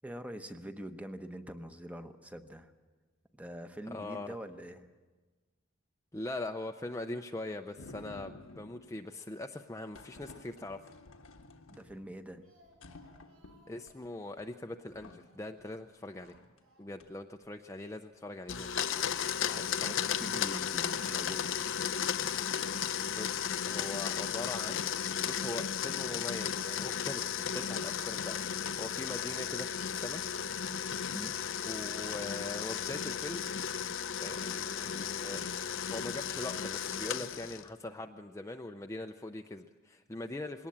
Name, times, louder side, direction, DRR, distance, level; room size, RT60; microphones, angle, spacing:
voice 1, 0.0-2.7 3.3-4.9 11.7-12.4 19.5-21.7 31.1-31.3, equal, 5° right, 8 dB, 1.0 m, -44 dB
voice 2, 3.9-4.3 6.1-10.9 13.7-16.4 16.8-18.7 23.0-24.8 25.3-30.2 31.6-33.4 34.2-35.4 35.9-40.7, left 2 dB, 15° left, 5 dB, 0.6 m, -42 dB
sound 1, 7.8-9.1 9.9-12.3 12.7-13.9 14.4-14.5 14.8-15.9 16.2-16.6 17.0-17.5, left 2 dB, 85° left, 1.3 m, -53 dB
Speech, 12.2-15.6 16.0-17.2 17.4-17.5 17.8-17.9, equal, 75° right, 5.3 m, -66 dB
Domestic sounds home sounds, 18.5-37.7, left 8 dB, 65° left, 0.7 m, -34 dB
20.5 x 18.0 x 8.6 m, 1.3 s
head